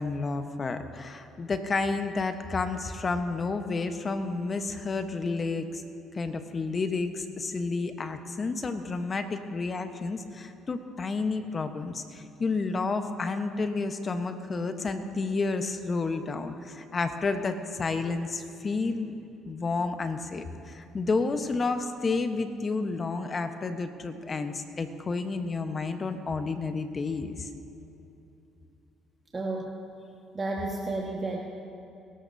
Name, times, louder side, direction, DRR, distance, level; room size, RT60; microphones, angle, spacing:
voice 1, 0.0-5.8 6.1-19.1 19.5-27.5, left 3 dB, 40° left, 8 dB, 1.0 m, -30 dB
voice 2, 29.3-29.8 30.3-31.4, right 2 dB, 30° right, -1 dB, 1.5 m, -31 dB
22.5 x 13.0 x 2.7 m, 2.8 s
supercardioid pair, 65°, 0 cm